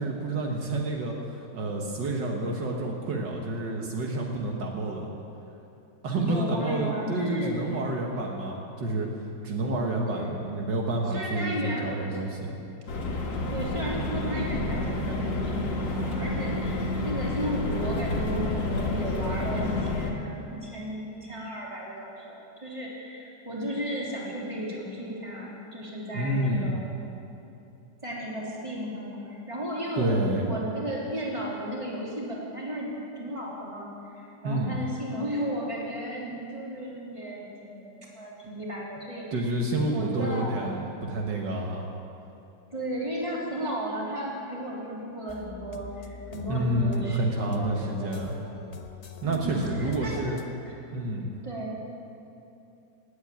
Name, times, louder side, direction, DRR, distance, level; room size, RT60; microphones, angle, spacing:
voice 1, 0.0-5.1 6.0-9.1 9.4-12.5 26.1-26.7 30.0-30.5 34.4-34.8 39.3-41.9 46.5-48.4 49.2-50.4 50.9-51.3, right 1 dB, 70° right, 0 dB, 2.1 m, -29 dB
voice 2, 6.2-7.6 10.1-10.5 11.1-12.2 13.5-26.9 28.0-32.9 33.2-33.9 34.2-39.4 39.9-40.8 42.7-48.2 49.2-50.2 50.6-50.8 51.4-51.8, equal, 15° right, -5 dB, 3.2 m, -34 dB
sound 1, 12.9-20.1, left 2 dB, 85° left, 2.4 m, -29 dB
sound 2, 45.3-50.5, left 2 dB, 50° left, 0.4 m, -43 dB
18.5 x 8.6 x 8.8 m, 2.7 s
omnidirectional pair, 1.9 m